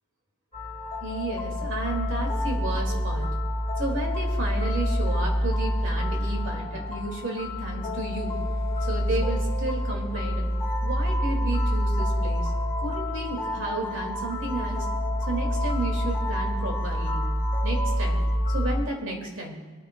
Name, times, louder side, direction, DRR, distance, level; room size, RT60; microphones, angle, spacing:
sound 1, 0.5-18.8, equal, 20° left, 3.2 m, -27 dB
voice 1, 1.0-3.3 3.8-8.3 8.8-10.5 10.8-12.5 12.8-14.9 15.3-17.2 17.6-18.2 18.5-19.5, right 2 dB, 55° right, 1 dB, 2.1 m, -32 dB
sound 2, 10.5-18.4, right 2 dB, 10° right, 0.9 m, -38 dB
26.0 x 9.6 x 2.2 m, 1.4 s
head